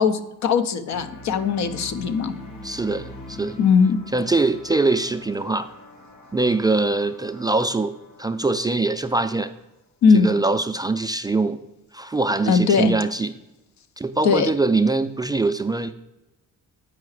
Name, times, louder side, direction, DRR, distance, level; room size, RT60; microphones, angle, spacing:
voice 1, 0.0-2.3 3.6-4.0 10.0-10.3 12.5-12.9 14.2-14.5, left 5 dB, 65° left, 11 dB, 0.7 m, -19 dB
sound 1, 0.9-9.1, left 2 dB, 85° left, 1.4 m, -43 dB
voice 2, 2.6-3.6 4.1-5.7 6.3-9.5 10.1-11.6 11.9-13.3 14.0-15.9, right 3 dB, 15° right, 8 dB, 0.3 m, -23 dB
8.5 x 4.8 x 4.8 m, 0.94 s
cardioid pair, 90°, 30 cm